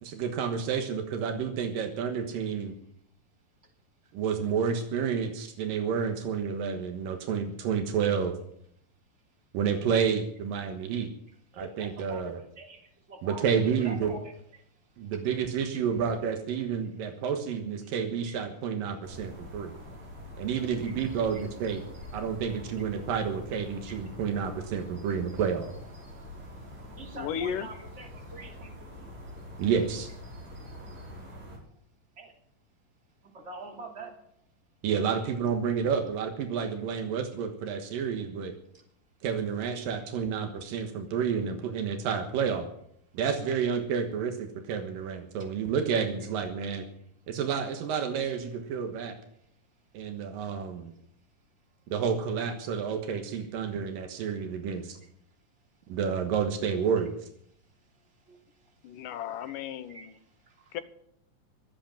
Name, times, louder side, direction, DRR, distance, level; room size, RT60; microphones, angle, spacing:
voice 1, 0.0-2.7 4.1-8.3 9.5-11.1 11.6-12.4 13.2-14.1 15.0-19.7 20.4-21.8 22.1-25.7 29.6-30.1 34.8-38.5 39.2-42.7 43.1-46.8 47.3-49.2 49.9-50.9 51.9-55.0 55.9-57.2, right 7 dB, 85° right, 5 dB, 3.1 m, -30 dB
voice 2, 11.5-15.2 18.3-18.4 19.7-20.0 20.8-20.9 21.3-21.4 23.9-24.2 26.0-29.1 32.2-32.3 33.2-34.1 38.7-38.8 46.9-47.0 49.4-49.5 57.5-59.1 59.9-60.8, right 2 dB, 20° right, 1 dB, 3.0 m, -46 dB
sound 1, 19.0-31.6, equal, 60° right, 6.7 m, -45 dB
voice 3, 27.1-27.7 58.8-60.1 60.7-60.8, left 9 dB, 75° left, 11 dB, 2.5 m, -34 dB
23.5 x 8.0 x 6.0 m, 0.69 s
omnidirectional pair, 3.9 m